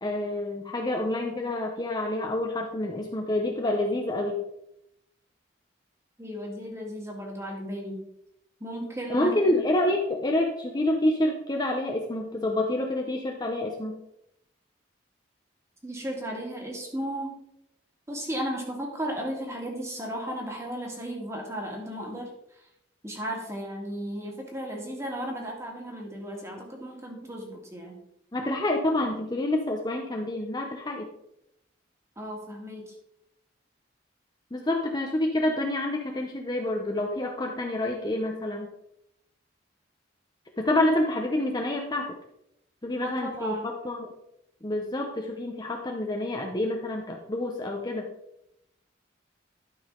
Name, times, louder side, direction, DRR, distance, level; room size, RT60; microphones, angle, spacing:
voice 1, 0.0-4.4 9.1-14.0 28.3-31.1 34.5-38.7 40.6-42.1 42.8-44.1 44.6-48.1, left 1 dB, 25° left, 1 dB, 0.8 m, -28 dB
voice 2, 6.2-8.1 8.6-9.6 15.8-17.4 18.1-22.3 23.0-28.0 32.2-32.9 43.0-43.7, equal, 15° right, 0 dB, 2.0 m, -35 dB
11.5 x 5.7 x 3.8 m, 0.79 s
head